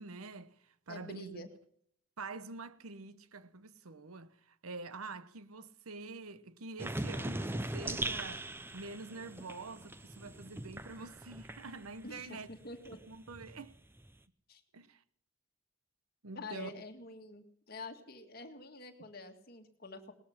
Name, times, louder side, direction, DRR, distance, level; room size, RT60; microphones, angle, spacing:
voice 1, 0.0-1.5 2.2-12.5 13.1-13.7 14.7-15.0 16.2-16.7, right 3 dB, 85° right, 1.0 m, -46 dB
voice 2, 0.9-1.5 12.0-13.0 14.5-14.6 16.3-20.1, left 3 dB, 45° left, 1.9 m, -47 dB
sound 1, 6.8-12.1 12.5-14.2, right 1 dB, 10° right, 0.6 m, -40 dB
19.0 x 13.0 x 5.8 m
head